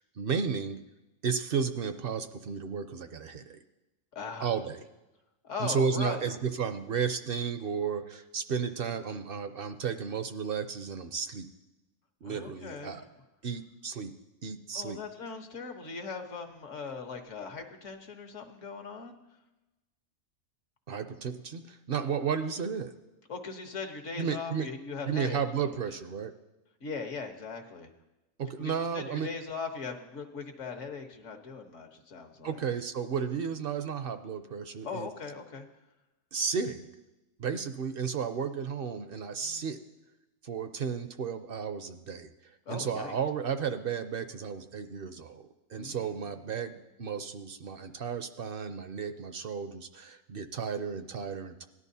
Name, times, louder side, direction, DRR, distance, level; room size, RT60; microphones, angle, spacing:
voice 1, 0.2-0.8 1.2-3.6 4.4-4.8 5.6-11.5 12.2-13.0 13.4-14.1 14.4-15.0 20.9-22.9 24.2-24.7 25.1-26.3 28.4-29.3 32.4-35.1 36.3-36.9 37.4-39.8 40.4-42.3 42.7-51.7, right 6 dB, 55° right, 10 dB, 0.7 m, -33 dB
voice 2, 4.1-4.5 5.4-6.3 12.2-13.0 14.7-19.2 23.3-25.7 26.8-27.9 28.6-32.6 34.8-35.7 39.4-39.6 42.7-43.1 45.8-46.8, left 5 dB, 70° left, 5 dB, 1.4 m, -40 dB
17.5 x 11.0 x 2.7 m, 1.0 s
omnidirectional pair, 1.3 m